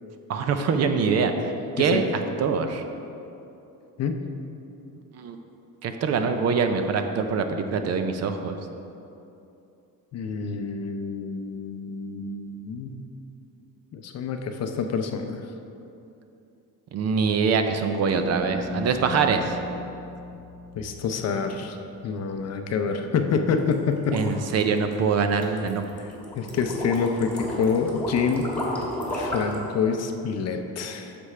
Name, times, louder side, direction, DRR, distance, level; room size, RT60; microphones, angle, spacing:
voice 1, 0.3-2.0 2.4-2.8 5.2-5.4 5.8-8.6 16.9-19.6 24.1-25.8, right 5 dB, 45° right, 7 dB, 0.5 m, -24 dB
voice 2, 10.1-13.0 13.9-15.4 20.8-21.8 22.0-24.3 26.4-28.5 29.1-31.2, left 5 dB, 45° left, 6 dB, 0.6 m, -27 dB
sound 1, 18.1-22.6, left 2 dB, 25° right, 1.2 m, -38 dB
sound 2, 23.6-29.6, equal, 5° left, 1.5 m, -32 dB
9.6 x 6.8 x 3.3 m, 2.8 s
cardioid pair, 150°, 37 cm